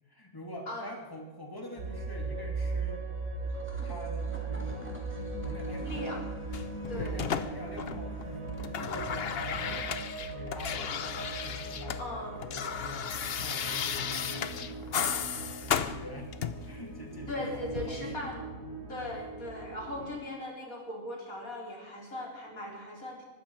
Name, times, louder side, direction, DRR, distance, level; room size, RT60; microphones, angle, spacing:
voice 1, 0.1-3.0 3.8-5.0 5.4-6.4 6.9-10.0 10.3-11.0 11.4-14.9 15.4-16.3 16.6-18.3, left 1 dB, 15° left, 1 dB, 2.6 m, -45 dB
sound 1, 1.8-20.2, right 3 dB, 85° right, 5.7 m, -39 dB
sound 2, 3.4-9.2, equal, 10° right, 2.9 m, -53 dB
voice 2, 5.8-6.2 6.9-7.2 12.0-12.3 17.3-18.6 18.9-23.2, left 1 dB, 85° left, -1 dB, 4.5 m, -39 dB
sound 3, 6.5-8.2 8.5-12.0 12.3-16.7 17.7-17.9, left 7 dB, 50° left, 0.9 m, -34 dB
23.5 x 13.0 x 4.7 m, 1.2 s
omnidirectional pair, 1.4 m